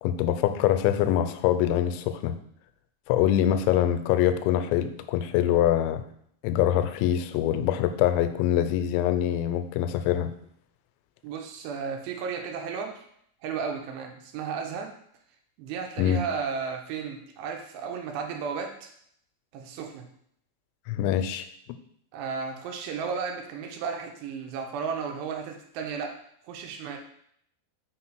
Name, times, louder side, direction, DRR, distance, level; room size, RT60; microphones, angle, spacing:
voice 1, 0.0-2.4 3.1-6.0 6.4-10.3 16.0-16.2 20.9-21.5, left 11 dB, 90° left, 9 dB, 2.8 m, -24 dB
voice 2, 11.2-13.1 13.4-14.9 15.6-18.9 19.5-20.1 22.1-26.1 26.4-27.0, right 6 dB, 85° right, 3 dB, 2.7 m, -34 dB
6.1 x 4.0 x 4.5 m, 0.68 s
omnidirectional pair, 5.1 m